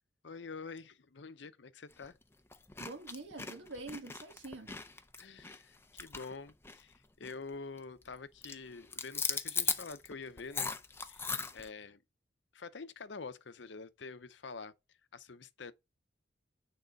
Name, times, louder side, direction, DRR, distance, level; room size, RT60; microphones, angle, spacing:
voice 1, 0.2-2.2 5.2-10.7 11.0-12.0 12.5-14.7 15.1-15.7, left 4 dB, 65° left, 0.7 m, -47 dB
sound 1, 1.9-2.1 2.5-7.0 7.2-7.5 7.8-8.1 8.4-11.7, left 5 dB, 10° left, 0.5 m, -38 dB
voice 2, 2.8-4.8, right 2 dB, 70° right, 1.5 m, -46 dB
9.1 x 3.7 x 5.2 m
head